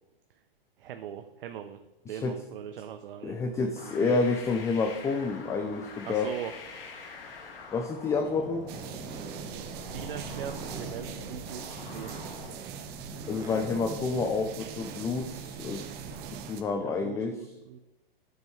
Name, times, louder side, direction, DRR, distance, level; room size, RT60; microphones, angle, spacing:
voice 1, 0.8-1.8 2.1-4.2 6.1-6.5 9.9-12.3 16.8-17.8, right 9 dB, 65° right, 7 dB, 0.7 m, -40 dB
voice 2, 2.1-2.4 3.2-6.3 7.7-8.7 13.3-15.9 16.3-17.4, left 4 dB, 10° left, 6 dB, 0.3 m, -29 dB
sound 1, 3.8-12.6, left 4 dB, 75° left, 1.9 m, -46 dB
sound 2, 8.1-16.6, right 3 dB, 10° right, 1.4 m, -44 dB
sound 3, 8.7-16.6, right 8 dB, 35° right, 0.8 m, -42 dB
9.1 x 7.2 x 3.1 m, 1.0 s
hypercardioid pair, 115°, 29 cm